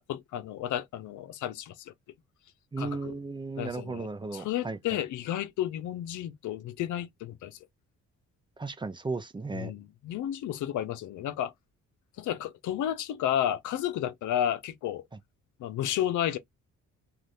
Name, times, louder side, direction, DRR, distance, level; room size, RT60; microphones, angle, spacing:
voice 1, 0.0-1.9 2.8-3.1 3.6-7.6 9.5-11.5 12.2-15.0 15.6-16.4, left 11 dB, 75° left, 0.7 m, -32 dB
voice 2, 2.7-5.0 8.6-9.7, right 3 dB, 15° right, 0.5 m, -35 dB
2.6 x 2.5 x 3.3 m
cardioid pair, 90°, 30 cm